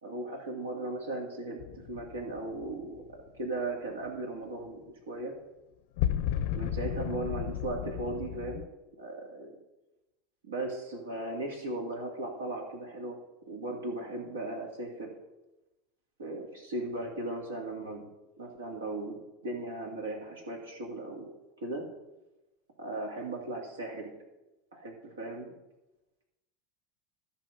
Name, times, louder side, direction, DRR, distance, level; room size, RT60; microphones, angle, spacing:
voice 1, 0.0-1.6 1.9-3.0 3.3-5.3 6.5-8.6 9.0-9.5 10.4-13.2 13.5-15.1 16.2-18.1 18.4-19.2 19.4-21.3 21.6-21.8 22.8-24.1 24.7-25.5, right 2 dB, 90° right, 1 dB, 2.6 m, -37 dB
sound 1, 1.6-3.0 6.0-8.7, left 11 dB, 65° left, 0.5 m, -33 dB
13.5 x 5.7 x 5.3 m, 1.0 s
hypercardioid pair, 90°, 0 cm